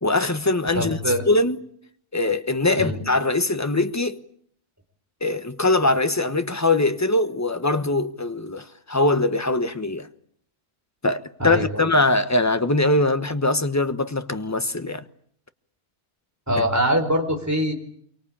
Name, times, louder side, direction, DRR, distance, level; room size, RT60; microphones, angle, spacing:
voice 1, 0.0-1.0 1.3-1.6 2.1-4.2 5.2-10.1 11.0-15.0, left 2 dB, 15° left, 1.1 m, -22 dB
voice 2, 0.7-1.3 2.8-3.0 11.4-11.9 16.5-17.7, equal, 10° right, 4.5 m, -23 dB
27.5 x 24.5 x 8.7 m
omnidirectional pair, 1.5 m